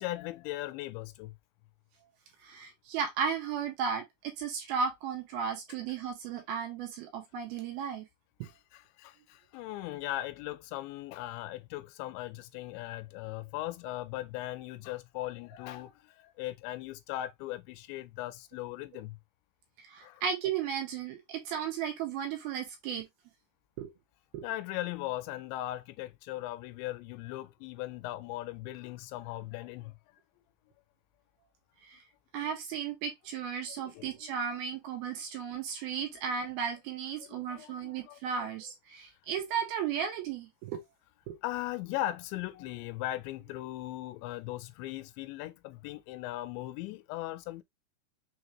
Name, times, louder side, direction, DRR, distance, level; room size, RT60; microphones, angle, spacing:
voice 1, 0.0-1.4 8.4-19.2 20.0-20.2 24.4-30.0 33.8-34.3 37.2-38.5 41.4-47.6, left 15 dB, 90° left, 2.8 m, -39 dB
voice 2, 2.4-8.1 18.9-19.0 19.8-23.1 23.8-23.9 24.3-24.5 31.9-32.0 32.3-40.8 41.3-41.4, right 7 dB, 75° right, 2.6 m, -35 dB
6.5 x 2.7 x 2.9 m
omnidirectional pair, 5.0 m